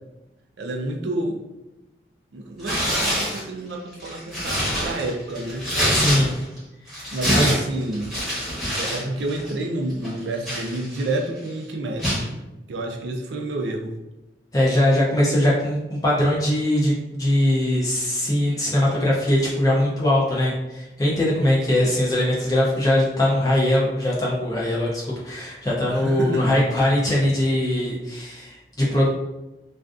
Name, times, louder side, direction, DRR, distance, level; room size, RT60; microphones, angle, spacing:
voice 1, 0.6-1.4 2.3-5.7 7.1-8.1 8.8-12.4 12.7-13.9 25.9-26.6, right 2 dB, 80° right, 2 dB, 0.4 m, -29 dB
Tearing, 2.6-3.4 3.9-6.6 6.9-9.0 9.3-9.5 10.0-11.2 12.0-12.3, equal, ahead, 0.9 m, -25 dB
voice 2, 5.9-6.3 6.9-7.0 7.3-7.5 14.5-29.1, left 1 dB, 20° left, -5 dB, 0.4 m, -21 dB
2.4 x 2.4 x 2.3 m, 0.98 s
head